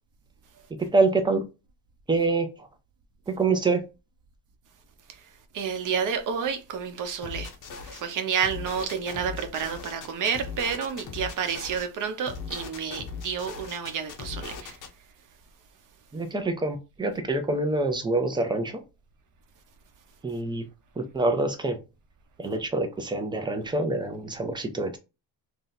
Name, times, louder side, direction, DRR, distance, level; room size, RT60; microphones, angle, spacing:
voice 1, 0.8-1.4 2.1-2.7 3.3-3.8 16.1-18.8 20.2-20.6 21.0-21.8 22.4-25.0, right 3 dB, 10° right, 0.4 m, -26 dB
voice 2, 5.1-7.5 7.8-14.8, right 7 dB, 50° right, 0.8 m, -30 dB
sound 1, 7.2-8.0 8.4-11.9 12.3-14.9, left 5 dB, 50° left, 0.7 m, -39 dB
3.1 x 2.7 x 3.8 m
cardioid pair, 160°, 42 cm